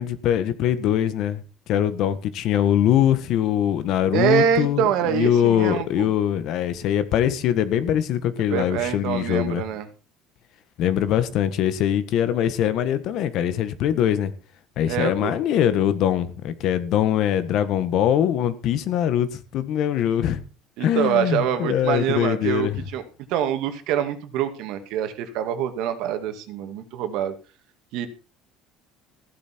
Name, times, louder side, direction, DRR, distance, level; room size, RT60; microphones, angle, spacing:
voice 1, 0.0-1.4 1.7-9.6 10.8-14.3 14.8-20.4 20.8-22.8, left 10 dB, 50° left, 1.5 m, -22 dB
voice 2, 4.1-6.1 8.5-9.9 14.9-15.4 20.8-23.0 23.3-27.3 27.9-28.1, right 9 dB, 60° right, 2.3 m, -25 dB
15.5 x 11.5 x 4.5 m
cardioid pair, 170°, 0 cm